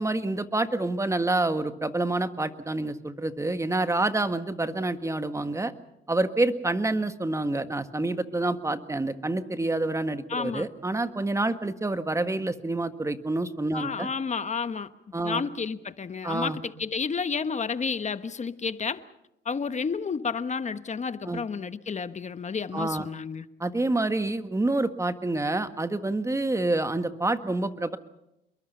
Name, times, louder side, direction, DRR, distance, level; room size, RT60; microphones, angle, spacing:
voice 1, 0.0-5.7 6.1-14.1 15.1-15.4 16.2-16.6 21.2-21.4 22.7-23.1 23.6-28.0, right 2 dB, 15° right, 9 dB, 1.6 m, -27 dB
voice 2, 10.3-10.7 13.7-14.9 15.2-19.0 19.4-23.4, left 5 dB, 35° left, 12 dB, 1.2 m, -31 dB
28.5 x 22.0 x 5.6 m, 0.86 s
cardioid pair, 90°, 20 cm